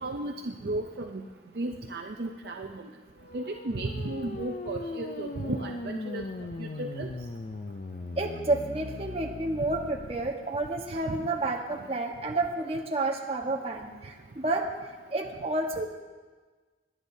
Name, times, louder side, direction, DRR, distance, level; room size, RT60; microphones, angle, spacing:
voice 1, 0.0-1.2 1.6-2.9 3.3-6.2 6.6-7.1 11.2-11.3, right 2 dB, 60° right, 3 dB, 0.5 m, -34 dB
sound 1, 3.2-10.3, left 3 dB, 45° left, 0.5 m, -39 dB
voice 2, 8.2-14.6 15.1-15.9, right 2 dB, 35° right, 1 dB, 1.2 m, -30 dB
22.0 x 9.7 x 2.7 m, 1.3 s
head